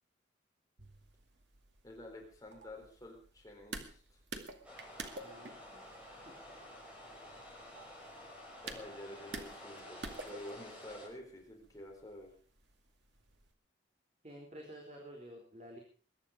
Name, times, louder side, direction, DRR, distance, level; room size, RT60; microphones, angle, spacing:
sound 1, 0.8-13.5, right 3 dB, 65° right, 2.3 m, -51 dB
voice 1, 1.8-4.2 8.6-12.3, left 1 dB, 20° left, 0 dB, 4.1 m, -49 dB
sound 2, 4.6-11.1, left 1 dB, 5° right, 6.3 m, -51 dB
voice 2, 5.2-5.8 6.2-6.6 8.7-8.9 14.2-15.8, equal, 35° right, -1 dB, 3.8 m, -52 dB
22.0 x 11.0 x 5.1 m, 0.42 s
head